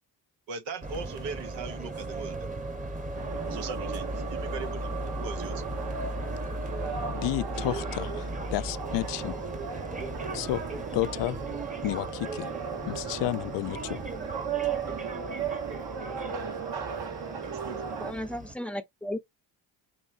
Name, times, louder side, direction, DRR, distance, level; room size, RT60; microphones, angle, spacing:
voice 1, 0.5-2.5 3.5-5.6 17.4-17.8, right 5 dB, 80° right, 0.9 m, -39 dB
sound 1, 0.8-18.5, right 1 dB, 15° right, 1.0 m, -37 dB
sound 2, 3.1-18.1, right 6 dB, 60° right, 1.3 m, -36 dB
voice 2, 7.1-9.4 10.3-10.6 10.9-11.4 11.8-12.5 12.8-14.0, left 16 dB, 70° left, 0.5 m, -31 dB
voice 3, 18.0-19.2, left 1 dB, 5° left, 0.6 m, -34 dB
4.6 x 3.0 x 2.6 m
cardioid pair, 75°, 44 cm